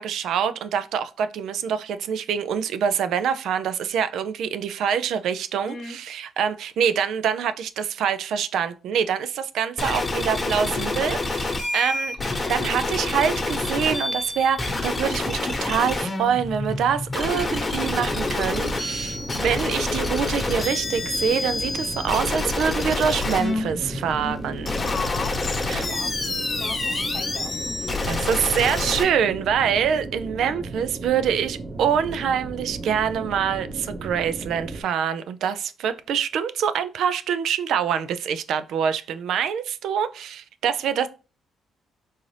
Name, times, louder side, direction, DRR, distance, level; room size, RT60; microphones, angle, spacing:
voice 1, 0.0-24.8 25.7-25.8 28.1-41.1, right 8 dB, 75° right, 0.3 m, -25 dB
sound 1, 9.8-29.0, left 2 dB, 25° left, 1.0 m, -27 dB
sound 2, 17.3-34.8, right 2 dB, 30° right, 0.7 m, -36 dB
voice 2, 24.6-28.1, left 5 dB, 50° left, 0.8 m, -36 dB
3.9 x 2.5 x 3.2 m
cardioid pair, 90°, 0 cm